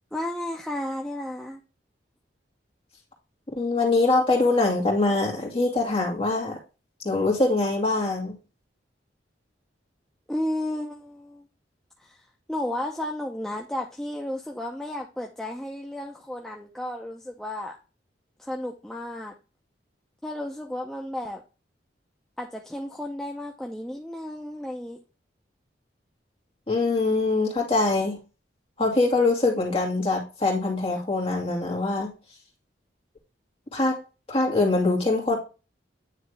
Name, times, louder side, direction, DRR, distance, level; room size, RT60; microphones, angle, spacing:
voice 1, 0.1-1.6 10.3-11.4 12.0-12.2 12.5-17.8 18.4-19.3 20.2-21.4 22.4-25.0, left 1 dB, 5° left, 0 dB, 0.6 m, -33 dB
voice 2, 3.6-6.6 7.0-8.3 26.7-28.2 28.8-32.1 33.7-34.0 34.3-35.4, left 3 dB, 30° left, 0 dB, 2.1 m, -23 dB
9.4 x 3.3 x 3.2 m, 0.31 s
head